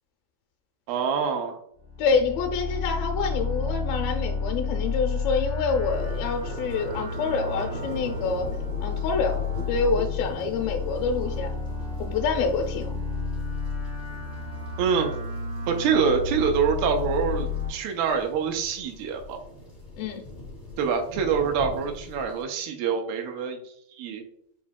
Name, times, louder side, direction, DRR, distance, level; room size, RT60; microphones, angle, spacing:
voice 1, 0.9-1.6 14.8-15.1 15.7-19.4 20.8-23.6 24.0-24.2, right 6 dB, 90° right, 3 dB, 2.5 m, -25 dB
sound 1, 1.8-17.7, left 4 dB, 50° right, 0.5 m, -31 dB
voice 2, 2.0-8.5 8.8-9.4 9.7-11.5 12.0-13.0 20.0-20.2, left 5 dB, 85° left, 2 dB, 2.3 m, -27 dB
sound 2, 5.9-22.4, equal, 50° left, 0.5 m, -42 dB
7.1 x 2.7 x 2.2 m, 0.69 s
omnidirectional pair, 4.2 m